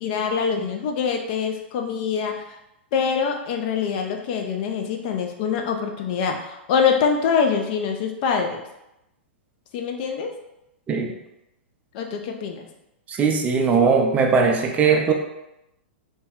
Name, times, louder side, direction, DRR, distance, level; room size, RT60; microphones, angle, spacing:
voice 1, 0.0-2.3 2.9-8.6 9.7-10.3 11.9-12.7, left 6 dB, 50° left, 3 dB, 0.5 m, -24 dB
voice 2, 13.1-15.1, right 5 dB, 20° right, 2 dB, 0.4 m, -19 dB
2.7 x 2.1 x 3.6 m, 0.88 s
hypercardioid pair, 110°, 6 cm